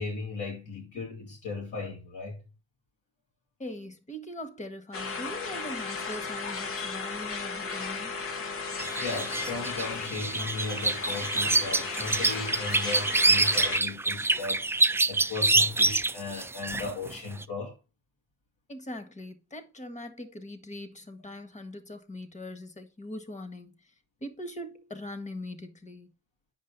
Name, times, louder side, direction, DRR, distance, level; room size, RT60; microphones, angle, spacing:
voice 1, 0.0-2.4 9.0-17.7, left 3 dB, 80° left, 3.4 m, -36 dB
voice 2, 3.6-8.2 18.7-23.7 24.2-26.1, left 1 dB, 25° left, 1.5 m, -41 dB
sound 1, 4.9-13.8, left 4 dB, 45° left, 1.0 m, -35 dB
sound 2, 8.8-17.1 17.4-17.5, right 2 dB, 10° right, 0.3 m, -26 dB
8.5 x 5.4 x 4.0 m
cardioid pair, 90°, 30 cm